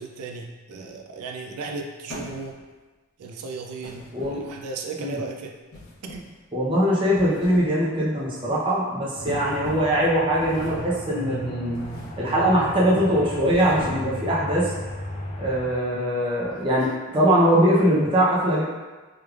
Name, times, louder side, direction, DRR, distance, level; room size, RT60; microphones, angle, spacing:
voice 1, 0.0-2.6 3.2-5.5 6.0-6.2, right 4 dB, 90° right, 2 dB, 0.4 m, -35 dB
sound 1, 2.1-2.8 3.8-4.7 5.7-6.4 7.0-7.8 8.2-8.4 9.3-10.0 10.4-11.0 11.7-12.2 12.6-12.9 13.4-14.2, left 1 dB, 75° left, 0.8 m, -41 dB
voice 2, 6.5-11.8 12.2-14.7 15.4-18.6, equal, 20° right, -6 dB, 0.6 m, -22 dB
Aircraft, 9.2-15.7, equal, 30° left, 0.5 m, -35 dB
3.2 x 3.2 x 2.3 m, 1.3 s
head